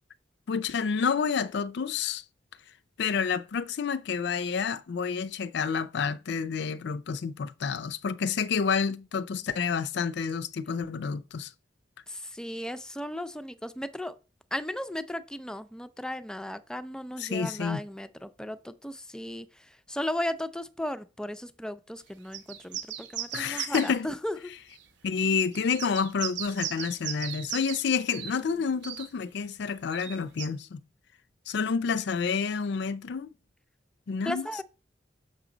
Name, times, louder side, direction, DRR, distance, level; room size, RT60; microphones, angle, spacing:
voice 1, 0.5-2.2 3.0-11.5 17.2-17.8 23.3-24.1 25.0-30.8 31.5-33.3 34.1-34.5, left 6 dB, 65° left, 0.4 m, -29 dB
voice 2, 12.1-14.1 14.5-19.5 19.9-24.4 34.2-34.6, left 1 dB, 5° left, 0.4 m, -35 dB
sound 1, 22.3-24.0 24.8-24.9 25.4-27.8 28.1-28.3 28.8-29.1 29.9-30.5, right 11 dB, 65° right, 1.0 m, -37 dB
6.6 x 6.0 x 3.9 m
head